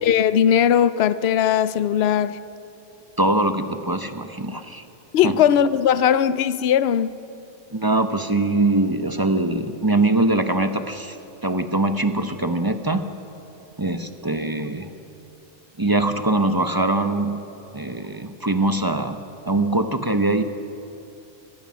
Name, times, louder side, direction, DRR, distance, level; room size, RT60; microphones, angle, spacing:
voice 1, 0.0-2.4 5.1-7.1, left 9 dB, 60° left, 0.8 m, -19 dB
voice 2, 3.2-4.8 5.2-5.4 7.7-11.2 11.4-13.1 13.8-14.9 15.8-17.4 17.7-20.4, right 2 dB, 20° right, 0.8 m, -22 dB
26.0 x 18.5 x 6.3 m
omnidirectional pair, 1.3 m